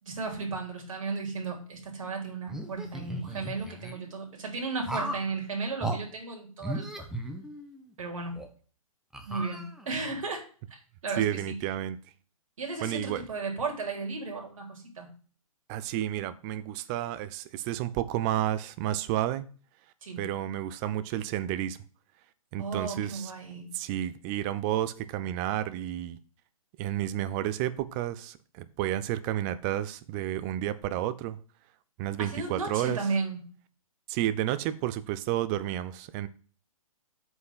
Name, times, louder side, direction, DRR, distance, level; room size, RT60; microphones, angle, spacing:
voice 1, 0.0-7.1 8.0-8.3 9.3-10.4 10.7-11.6 12.6-15.1 20.0-20.3 22.6-23.7 32.2-33.5, right 4 dB, 65° right, 3.8 m, -35 dB
sound 1, 2.5-3.9 4.8-5.3 5.8-6.0 6.6-7.9 8.3-8.5 9.1-10.0, right 1 dB, 5° right, 1.1 m, -36 dB
voice 2, 11.2-12.0 12.8-13.2 15.7-19.4 20.2-21.8 22.5-23.3 23.7-26.2 26.8-31.4 32.0-33.0 34.1-36.3, right 12 dB, 30° right, 0.6 m, -31 dB
7.8 x 5.5 x 5.7 m
hypercardioid pair, 130°, 18 cm